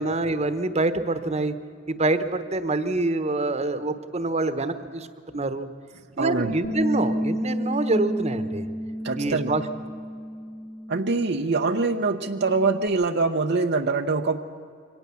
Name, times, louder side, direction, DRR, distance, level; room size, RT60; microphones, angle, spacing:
voice 1, 0.0-1.5 1.9-5.1 5.3-5.7 6.2-8.6 9.2-9.6, right 2 dB, 35° right, 11 dB, 1.1 m, -26 dB
voice 2, 6.2-6.6 9.0-9.5 10.9-14.4, right 3 dB, 60° right, 5 dB, 0.8 m, -24 dB
Bass guitar, 6.6-12.9, equal, 35° left, 1.4 m, -31 dB
24.0 x 18.0 x 7.0 m, 2.3 s
head